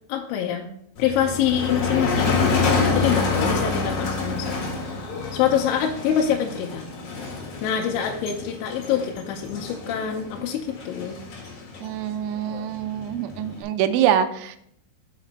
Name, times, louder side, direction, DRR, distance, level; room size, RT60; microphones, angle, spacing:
voice 1, 0.1-0.7 1.0-2.4 2.9-4.6 5.3-6.9 7.6-11.2, left 9 dB, 85° left, 1 dB, 2.9 m, -25 dB
Motor vehicle (road), 1.0-13.6, left 4 dB, 55° left, 2.3 m, -27 dB
voice 2, 11.8-14.6, right 10 dB, 80° right, 8 dB, 2.9 m, -24 dB
6.0 x 5.8 x 4.1 m, 0.70 s
omnidirectional pair, 5.7 m